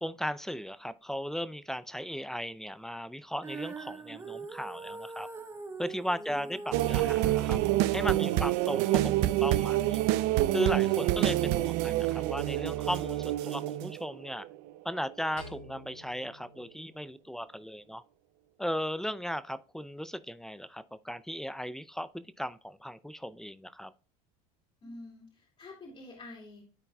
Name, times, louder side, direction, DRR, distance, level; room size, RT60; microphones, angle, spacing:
voice 1, 0.0-5.3 5.8-7.6 7.9-10.0 10.5-14.5 14.8-18.0 18.6-23.9, equal, ahead, 0.5 m, -36 dB
Female singing, 3.4-9.6, right 4 dB, 15° right, 1.1 m, -44 dB
voice 2, 6.1-6.6 15.2-15.4 24.8-26.6, left 2 dB, 35° left, 2.8 m, -48 dB
sound 1, 6.7-14.7 15.1-15.3, right 15 dB, 65° right, 0.6 m, -27 dB
sound 2, 15.4-17.7, left 2 dB, 85° left, 3.5 m, -51 dB
13.5 x 4.5 x 2.3 m
supercardioid pair, 95°, 18 cm